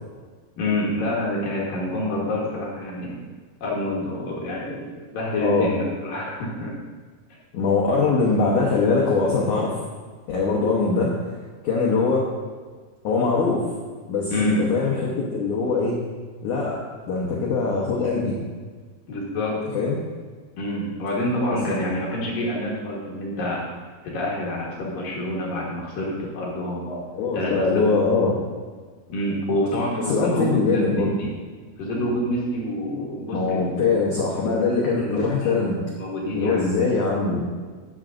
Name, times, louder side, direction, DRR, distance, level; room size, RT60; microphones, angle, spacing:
voice 1, 0.6-3.2 3.6-6.7 14.3-14.6 19.1-19.6 20.6-23.6 24.0-26.9 27.3-27.9 29.1-31.3 31.8-33.8 35.0-35.6 36.0-36.6, left 1 dB, 65° left, -4 dB, 2.6 m, -27 dB
voice 2, 5.4-5.7 7.5-9.8 10.3-11.4 11.6-12.3 13.0-13.7 14.1-16.0 16.4-18.4 19.7-20.0 21.7-21.9 26.8-28.4 30.1-31.1 33.3-35.8 36.3-37.4, left 4 dB, 80° left, -3 dB, 1.7 m, -22 dB
12.5 x 9.7 x 2.6 m, 1.5 s
omnidirectional pair, 5.1 m